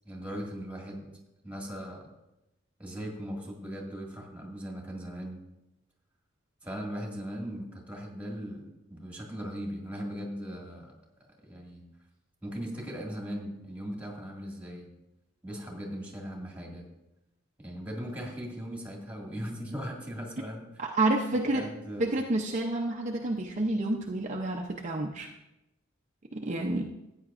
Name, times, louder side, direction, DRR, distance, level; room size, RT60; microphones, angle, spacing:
voice 1, 0.1-1.1 1.4-2.1 2.8-5.4 6.6-10.9 11.4-11.8 12.4-14.9 15.4-16.9 17.6-20.7 21.5-22.1, equal, 5° right, -1 dB, 1.9 m, -39 dB
voice 2, 20.8-21.7 22.0-25.3 26.3-26.9, right 2 dB, 35° right, 1 dB, 0.6 m, -29 dB
14.5 x 9.0 x 2.5 m, 0.93 s
head